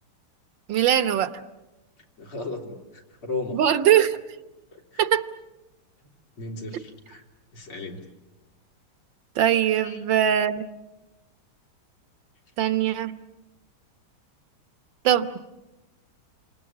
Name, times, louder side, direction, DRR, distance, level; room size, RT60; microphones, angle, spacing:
voice 1, 0.7-1.3 3.5-4.2 5.0-5.2 9.3-10.6 12.6-13.1 15.0-15.4, right 10 dB, 65° right, 11 dB, 1.7 m, -21 dB
voice 2, 2.2-3.6 4.7-5.0 6.4-7.2 7.5-8.0 9.8-10.0, left 3 dB, 90° left, 1 dB, 4.3 m, -35 dB
29.0 x 26.5 x 7.3 m, 1.0 s
omnidirectional pair, 2.3 m